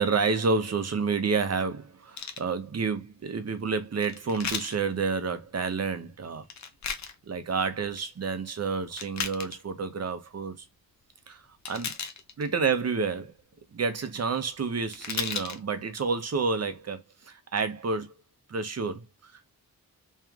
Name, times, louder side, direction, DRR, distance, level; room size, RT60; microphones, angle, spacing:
voice 1, 0.0-6.5 7.3-10.6 11.3-12.0 12.4-13.3 13.7-18.1 18.5-19.5, right 4 dB, 45° right, 0.9 m, -29 dB
sound 1, 2.2-2.4 4.0-4.8 6.4-7.1 7.7-8.0 8.8-9.6 11.7-12.5 14.6-14.7 14.9-15.6 16.2-16.3, left 6 dB, 50° left, 0.7 m, -35 dB
3.2 x 3.1 x 3.6 m
wide cardioid pair, 95°, 36 cm